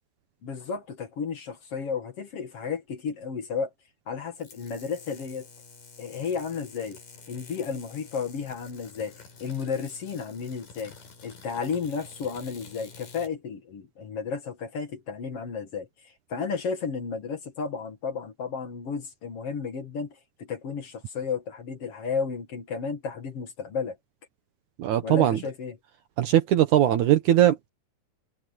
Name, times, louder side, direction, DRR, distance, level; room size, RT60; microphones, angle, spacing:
voice 1, 0.4-3.7 4.1-5.5 6.0-7.0 7.3-9.1 9.4-10.9 11.2-24.0 25.0-25.8, left 5 dB, 50° left, 2.4 m, -33 dB
sound 1, 4.3-13.3, left 4 dB, 85° left, 6.4 m, -49 dB
voice 2, 24.8-25.4 26.2-27.7, right 12 dB, 70° right, 2.4 m, -20 dB
omnidirectional pair, 3.8 m